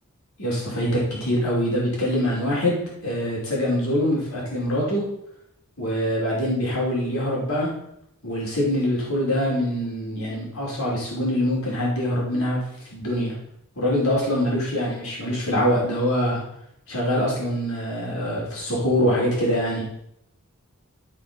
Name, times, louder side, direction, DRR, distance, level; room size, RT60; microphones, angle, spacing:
voice 1, 0.4-5.0 5.8-7.7 8.2-12.6 12.9-13.3 13.8-16.4 16.9-19.8, equal, 75° left, -5 dB, 5.0 m, -24 dB
15.0 x 6.2 x 5.9 m, 0.77 s
head